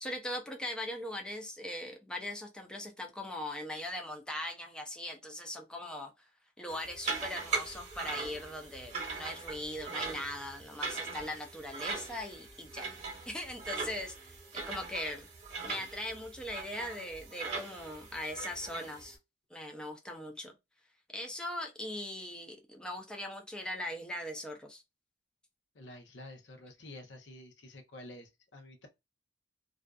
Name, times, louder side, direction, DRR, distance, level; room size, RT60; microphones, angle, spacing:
voice 1, 0.0-6.1 6.6-14.1 14.5-15.3 15.6-19.2 19.5-20.5 21.1-24.8, left 1 dB, 5° left, 0.4 m, -40 dB
sound 1, 6.7-19.1, right 4 dB, 40° right, 1.0 m, -40 dB
voice 2, 25.7-28.9, left 1 dB, 80° left, 0.7 m, -50 dB
2.5 x 2.3 x 2.3 m
head